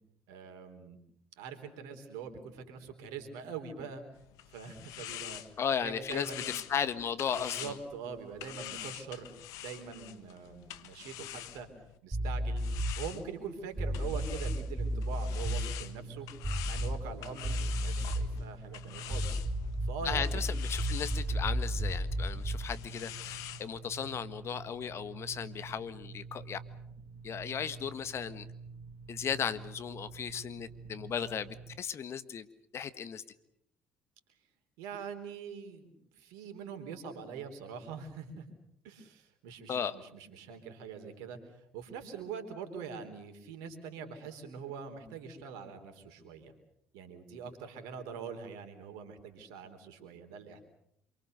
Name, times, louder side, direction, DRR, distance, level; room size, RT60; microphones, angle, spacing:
voice 1, 0.3-1.0 1.4-4.0 4.5-5.4 5.8-6.5 7.3-9.3 9.6-11.7 12.0-12.6 13.0-16.3 16.6-19.4 19.8-20.3 34.8-38.5 38.8-41.4 41.7-46.5 46.9-50.6, right 6 dB, 75° right, 6 dB, 3.9 m, -43 dB
sound 1, 4.1-12.0 12.6-23.6, left 13 dB, 70° left, 1.4 m, -46 dB
voice 2, 5.6-7.7 20.0-26.6 27.2-28.5 29.1-32.5 32.7-33.2 39.7-40.0, left 7 dB, 50° left, 13 dB, 1.5 m, -36 dB
sound 2, 12.1-13.1 13.7-15.7 16.4-17.2 17.4-18.4 19.1-22.7, equal, 20° right, 6.9 m, -33 dB
sound 3, 15.4-31.8, right 4 dB, 55° right, 2.0 m, -48 dB
27.5 x 24.0 x 6.8 m, 0.75 s
hypercardioid pair, 60°, 6 cm